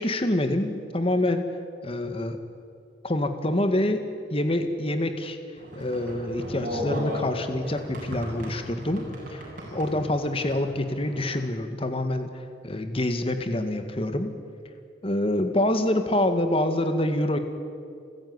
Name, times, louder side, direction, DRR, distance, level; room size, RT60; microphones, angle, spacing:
voice 1, 0.0-1.4 1.8-2.4 3.0-4.0 4.3-5.4 5.8-9.0 9.3-9.4 9.7-12.3 12.6-14.3 15.0-17.4, left 1 dB, 35° left, 7 dB, 1.9 m, -26 dB
sound 1, 5.6-11.4, left 1 dB, 50° right, 7.4 m, -36 dB
29.0 x 15.5 x 9.7 m, 2.4 s
head